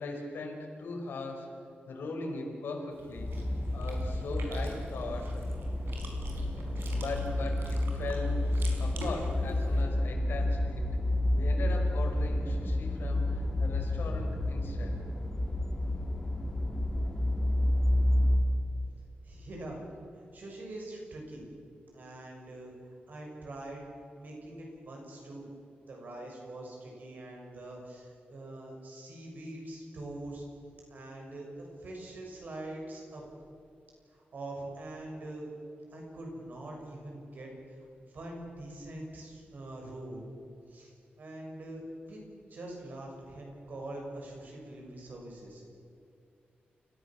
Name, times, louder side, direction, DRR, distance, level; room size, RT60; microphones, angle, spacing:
voice 1, 0.0-1.5 1.9-3.3 3.7-5.4 6.9-10.8 11.3-15.0, left 3 dB, 85° left, 1 dB, 5.0 m, -39 dB
Chewing mastication, 2.9-9.8, right 3 dB, 80° right, 4.8 m, -46 dB
sound 1, 3.2-18.4, left 1 dB, 15° left, 2.7 m, -30 dB
voice 2, 19.2-19.8 20.2-21.4 21.9-22.7 23.1-23.8 24.1-25.5 25.9-30.4 30.9-33.2 34.1-35.5 35.9-40.2 40.7-42.2 42.5-45.7, right 1 dB, 55° right, 0 dB, 6.6 m, -44 dB
29.5 x 15.5 x 7.5 m, 2.5 s
wide cardioid pair, 170°, 4 cm